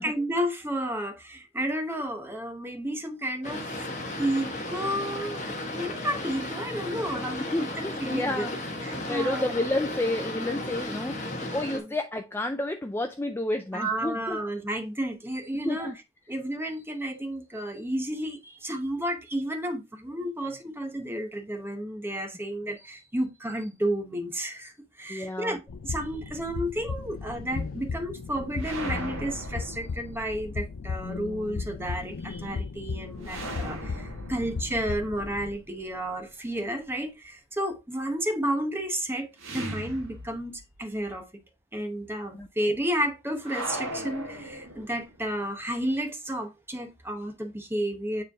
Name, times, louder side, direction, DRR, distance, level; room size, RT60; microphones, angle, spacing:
voice 1, 0.0-3.9 4.2-8.5 8.8-9.5 11.7-11.9 13.7-15.9 16.3-41.3 41.7-48.2, right 1 dB, 10° right, 0.8 m, -32 dB
Boat Water vehicle, 3.4-11.8, left 1 dB, 35° left, 1.4 m, -35 dB
voice 2, 7.5-8.5 8.8-14.4 15.7-16.0 25.1-25.6 42.3-42.5, left 2 dB, 10° left, 0.3 m, -30 dB
sound 1, 25.7-35.5, left 4 dB, 75° left, 0.5 m, -36 dB
sound 2, 28.6-30.5 33.2-36.2 39.4-40.8 41.1-41.2 43.4-45.2, right 1 dB, 70° right, 1.6 m, -39 dB
9.2 x 3.2 x 3.5 m
head